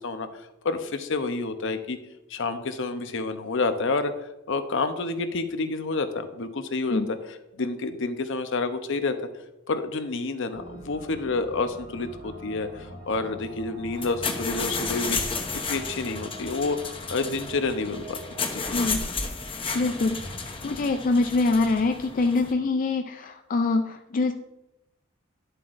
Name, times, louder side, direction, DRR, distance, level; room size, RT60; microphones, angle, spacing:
voice 1, 0.0-2.0 2.3-4.1 4.5-7.0 7.5-9.1 9.7-15.4 15.7-16.8 17.1-18.2 18.5-18.6, left 3 dB, 65° left, 9 dB, 0.7 m, -29 dB
sound 1, 10.5-20.5, equal, 50° right, 2.9 m, -44 dB
sound 2, 13.9-22.5, left 4 dB, 25° left, 0.9 m, -32 dB
voice 2, 18.7-19.1 19.7-20.3 20.6-24.3, left 3 dB, 40° left, 6 dB, 0.4 m, -24 dB
10.5 x 7.7 x 2.6 m, 0.94 s
head